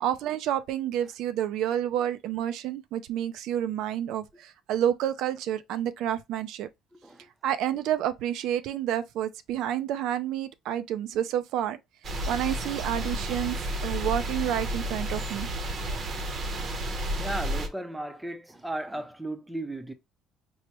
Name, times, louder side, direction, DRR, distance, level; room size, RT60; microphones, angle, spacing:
voice 1, 0.0-6.7 7.4-11.8 12.3-13.6 13.8-15.5, right 11 dB, 70° right, 0.3 m, -29 dB
voice 2, 6.9-7.3 17.2-19.9, right 1 dB, 5° right, 0.4 m, -35 dB
sound 1, 12.0-17.7, right 1 dB, 40° right, 0.7 m, -31 dB
4.5 x 2.1 x 2.8 m
cardioid pair, 140°, 0 cm